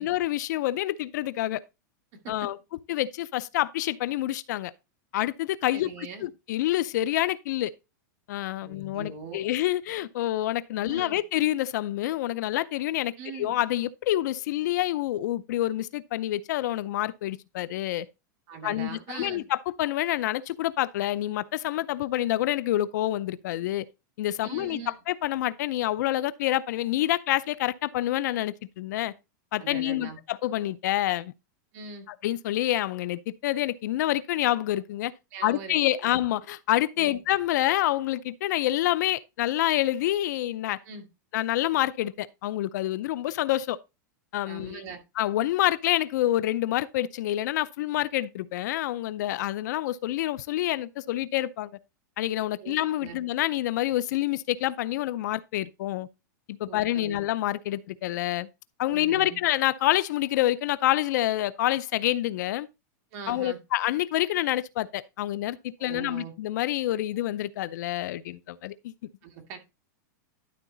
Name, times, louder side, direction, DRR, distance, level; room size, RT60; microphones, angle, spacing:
voice 1, 0.0-1.6 2.3-2.6 2.9-4.7 5.1-7.7 8.3-18.1 18.6-23.8 24.2-29.1 29.5-31.3 32.2-35.1 35.4-40.8 41.3-43.8 44.3-44.8 45.2-51.7 52.2-56.1 56.5-58.5 58.8-62.7 63.3-68.9, left 14 dB, 65° left, 0.5 m, -27 dB
voice 2, 5.7-6.3 8.6-9.5 10.8-11.2 13.2-13.6 18.5-19.4 24.4-24.9 29.6-30.2 31.7-32.1 35.3-36.1 37.0-37.2 40.8-41.1 44.5-45.0 52.6-53.2 56.7-57.2 58.9-59.4 63.1-63.6 65.8-66.3 69.2-69.6, right 6 dB, 45° right, 2.1 m, -41 dB
11.5 x 4.0 x 3.9 m
supercardioid pair, 145°, 10 cm